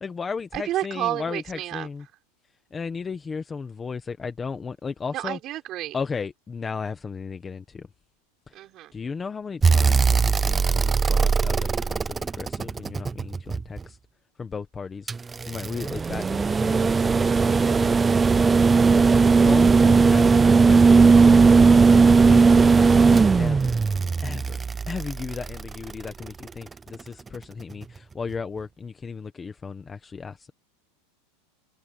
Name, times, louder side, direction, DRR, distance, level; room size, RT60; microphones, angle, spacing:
voice 1, 0.0-2.0 2.7-5.4 5.9-7.9 8.5-8.6 8.9-14.0 14.4-15.1 15.5-18.0 19.4-21.0 21.3-23.8 24.2-24.6 24.9-30.5, left 5 dB, 10° left, 1.0 m, -35 dB
voice 2, 0.5-1.9 5.1-6.0 8.5-8.9 19.6-20.2, right 14 dB, 30° right, 6.3 m, -31 dB
sound 1, 9.6-13.8 15.1-26.3 27.8-27.9, right 4 dB, 10° right, 0.3 m, -18 dB
supercardioid pair, 175°, 0 cm